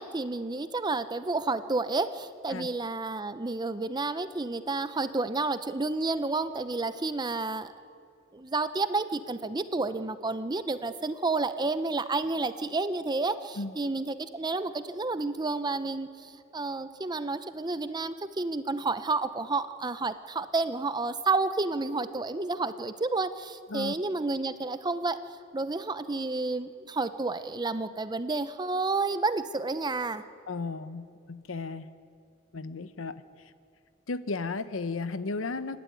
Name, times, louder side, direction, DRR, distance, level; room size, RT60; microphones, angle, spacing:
voice 1, 0.0-7.7 8.3-25.2 25.5-30.2, right 3 dB, 20° right, 12 dB, 0.7 m, -30 dB
voice 2, 30.5-31.9 32.5-33.5 34.1-35.8, left 3 dB, 85° left, 12 dB, 0.8 m, -34 dB
26.0 x 11.5 x 9.5 m, 2.4 s
head